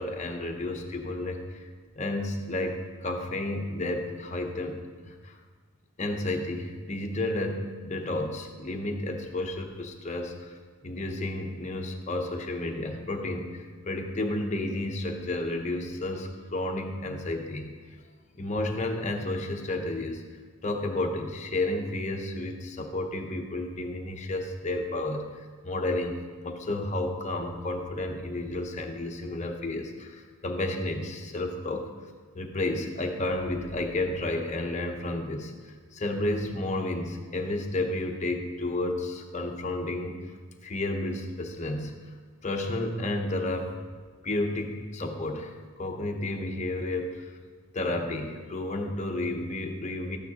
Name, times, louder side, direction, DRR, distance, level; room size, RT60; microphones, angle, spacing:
voice 1, 0.0-1.7 2.0-5.4 6.0-17.7 18.4-20.2 20.6-26.2 26.4-31.9 32.3-40.2 40.6-42.0 42.4-43.7 44.2-47.3 47.7-50.2, left 2 dB, 30° left, 3 dB, 0.8 m, -31 dB
13.0 x 8.9 x 2.9 m, 1.5 s
head